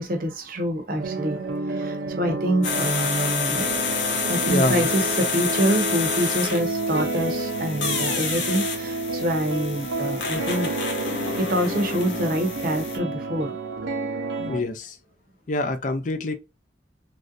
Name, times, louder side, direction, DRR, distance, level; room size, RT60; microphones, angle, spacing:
voice 1, 0.0-3.7 4.3-10.9 11.4-13.6 14.0-14.4, equal, 50° right, 0.7 m, -26 dB
sound 1, 1.0-14.6, right 2 dB, 90° right, 0.6 m, -30 dB
sound 2, 2.6-13.0, left 5 dB, 90° left, 1.0 m, -28 dB
voice 2, 4.5-4.9 14.4-15.0 15.5-16.3, left 2 dB, 45° left, 0.4 m, -26 dB
3.2 x 2.6 x 2.5 m
head